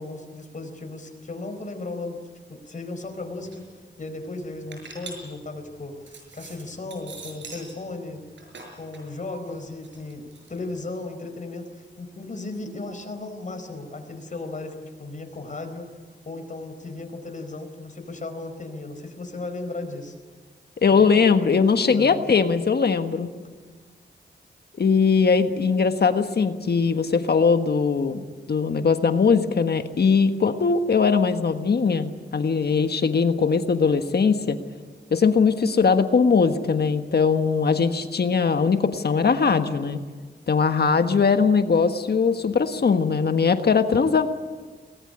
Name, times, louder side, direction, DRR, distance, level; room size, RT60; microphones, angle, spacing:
voice 1, 0.0-2.2 2.5-3.6 4.0-8.2 8.7-10.2 10.5-15.9 16.2-20.1 20.9-21.2 21.9-22.2, left 2 dB, 45° left, 5 dB, 4.5 m, -35 dB
sound 1, 3.4-3.7 4.1-7.8 8.1-10.8, right 3 dB, 85° right, 6.1 m, -43 dB
voice 2, 20.8-23.3 24.8-34.6 35.1-40.0 40.5-44.3, left 5 dB, 60° left, 8 dB, 1.5 m, -20 dB
22.5 x 19.5 x 9.9 m, 1.4 s
wide cardioid pair, 80°, 19 cm